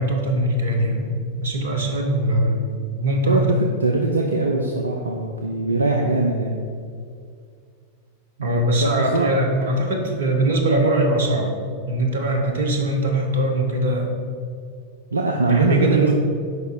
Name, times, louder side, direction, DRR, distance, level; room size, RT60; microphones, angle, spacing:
voice 1, 0.0-2.7 3.0-3.4 8.4-11.5 11.9-14.1 15.5-16.1, right 1 dB, 60° right, 2 dB, 1.2 m, -21 dB
voice 2, 3.3-6.7 8.4-9.3 15.1-16.1, right 2 dB, 80° right, 1 dB, 0.5 m, -22 dB
6.6 x 5.2 x 5.0 m, 2.2 s
figure-of-eight pair, 90°, 0 cm